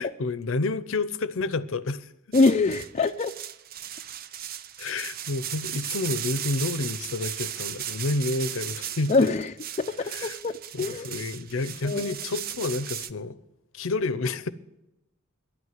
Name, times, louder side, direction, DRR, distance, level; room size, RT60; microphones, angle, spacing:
voice 1, 0.0-2.1 4.8-9.3 10.0-10.4 10.7-13.4 13.7-14.5, left 3 dB, 65° left, 0.7 m, -29 dB
voice 2, 2.3-3.3 9.1-9.5 9.8-11.1 11.8-12.2, left 3 dB, 30° left, 0.4 m, -24 dB
sound 1, 2.3-13.1, right 10 dB, 45° right, 0.6 m, -36 dB
11.5 x 9.6 x 9.3 m
head